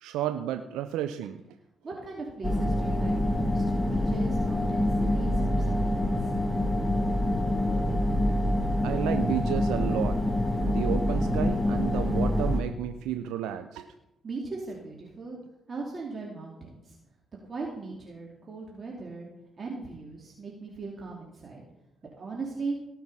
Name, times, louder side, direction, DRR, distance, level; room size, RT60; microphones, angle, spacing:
voice 1, 0.0-1.4 8.8-10.2 10.6-13.9, right 11 dB, 85° right, 9 dB, 0.5 m, -32 dB
voice 2, 1.8-6.3 14.2-15.4 15.7-16.9 17.4-19.3 19.6-21.6 22.2-22.8, right 3 dB, 45° right, -2 dB, 2.7 m, -38 dB
sound 1, 2.4-12.6, left 1 dB, 5° left, 2.6 m, -26 dB
18.0 x 6.1 x 5.6 m, 0.88 s
supercardioid pair, 55°, 0 cm